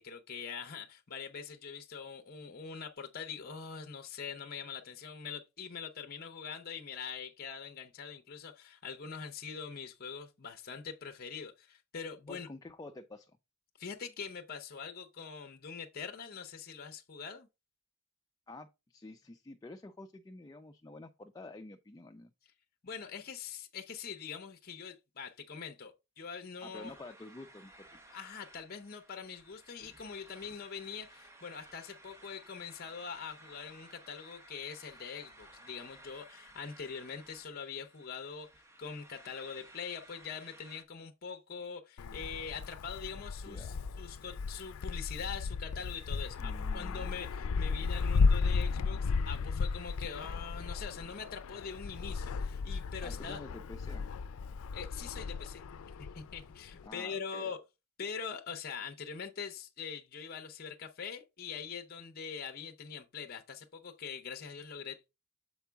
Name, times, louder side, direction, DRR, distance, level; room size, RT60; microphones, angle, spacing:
voice 1, 0.0-12.5 13.8-17.5 22.8-26.9 28.1-38.5 38.8-53.4 54.7-55.6 56.0-57.6 58.0-65.1, left 6 dB, 45° left, 0.7 m, -43 dB
voice 2, 12.3-13.4 18.5-22.3 26.6-28.0 43.4-43.7 46.4-47.1 53.0-54.1 56.8-57.5, left 2 dB, 15° left, 0.4 m, -49 dB
sound 1, 26.7-40.8, right 1 dB, 15° right, 0.7 m, -57 dB
Wind, 42.0-56.9, left 4 dB, 85° left, 0.4 m, -34 dB
7.2 x 4.5 x 3.4 m
head